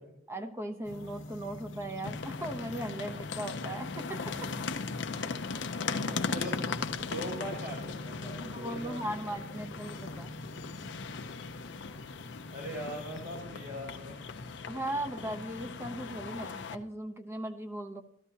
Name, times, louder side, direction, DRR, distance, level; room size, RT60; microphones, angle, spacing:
voice 1, 0.3-4.5 5.1-5.3 8.4-10.3 14.7-18.0, right 1 dB, 15° right, 6 dB, 0.8 m, -38 dB
sound 1, 0.8-13.4, left 1 dB, 90° left, 1.1 m, -46 dB
sound 2, 2.0-16.8, left 4 dB, 65° left, 0.6 m, -38 dB
voice 2, 6.0-6.7 7.1-9.4 12.5-14.5, right 1 dB, 50° right, -3 dB, 5.9 m, -41 dB
14.0 x 12.5 x 2.8 m, 0.70 s
head